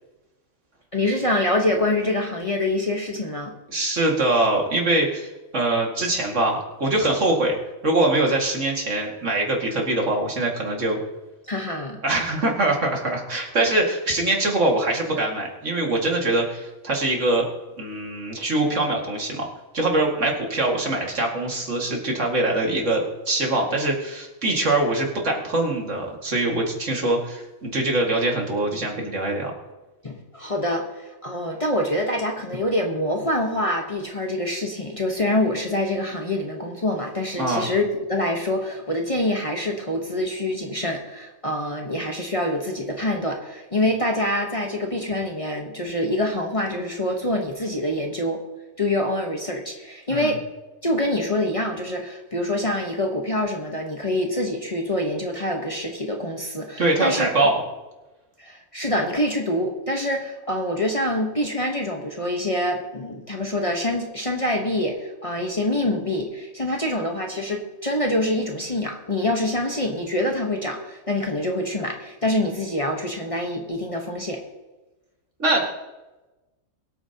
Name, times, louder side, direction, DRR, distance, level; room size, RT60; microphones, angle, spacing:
voice 1, 0.9-3.5 11.5-12.0 30.0-48.4 48.8-50.4 50.8-57.3 58.4-74.4, left 1 dB, 25° left, 1 dB, 1.2 m, -25 dB
voice 2, 3.7-7.6 7.8-11.0 12.0-17.4 17.8-19.5 19.7-29.5 37.4-37.7 50.1-50.4 56.8-57.6 75.4-75.7, right 2 dB, 65° right, 0 dB, 2.5 m, -23 dB
23.0 x 8.7 x 2.9 m, 1.1 s
omnidirectional pair, 1.4 m